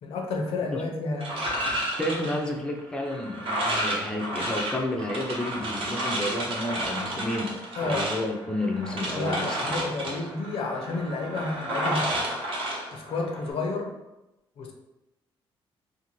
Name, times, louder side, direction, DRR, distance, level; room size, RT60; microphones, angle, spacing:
voice 1, 0.0-1.4 7.8-8.1 9.2-12.3 12.9-13.9 14.6-14.7, left 3 dB, 80° left, 2 dB, 0.6 m, -31 dB
sound 1, 1.2-13.5, right 1 dB, 70° right, 0.8 m, -31 dB
voice 2, 2.0-10.1, left 1 dB, 10° left, 1 dB, 0.4 m, -31 dB
2.5 x 2.4 x 3.0 m, 0.96 s
cardioid pair, 120°, 10 cm